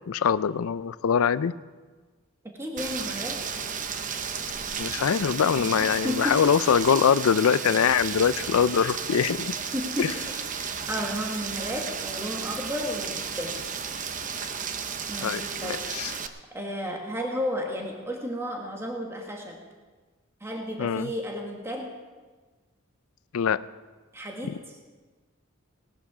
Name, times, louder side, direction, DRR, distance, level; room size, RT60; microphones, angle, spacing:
voice 1, 0.1-1.5 4.8-9.5 10.0-10.1 15.2-16.1 20.8-21.1 23.3-23.6 24.4-24.5, left 7 dB, 85° left, 16 dB, 0.4 m, -23 dB
voice 2, 2.6-3.4 5.5-6.6 9.7-10.3 10.9-13.5 15.1-15.8 16.5-19.6 20.4-21.9 24.1-24.5, equal, 10° right, 1 dB, 1.6 m, -33 dB
Rain, 2.8-16.3, right 6 dB, 40° right, 0.8 m, -33 dB
19.0 x 11.5 x 4.8 m, 1.4 s
head